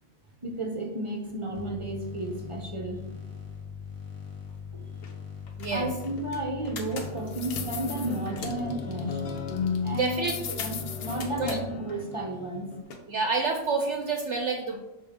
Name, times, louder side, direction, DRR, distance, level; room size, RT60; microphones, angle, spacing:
voice 1, 0.4-3.0 4.7-4.9 5.7-9.2 9.8-10.2 10.6-10.7 11.0-12.7, right 1 dB, 30° right, 2 dB, 0.6 m, -33 dB
sound 1, 1.5-11.7, left 6 dB, 25° left, 1.1 m, -41 dB
sound 2, 4.5-4.6 4.9-5.1 5.5-8.7 10.2-11.6 12.8-13.0, left 4 dB, 85° left, 1.3 m, -42 dB
voice 2, 5.6-5.9 9.9-10.6 11.3-11.6 13.1-14.8, right 4 dB, 60° right, 3 dB, 0.8 m, -28 dB
sound 3, 7.0-12.8, left 5 dB, 60° left, 0.7 m, -35 dB
6.3 x 4.5 x 3.6 m, 0.98 s
omnidirectional pair, 1.5 m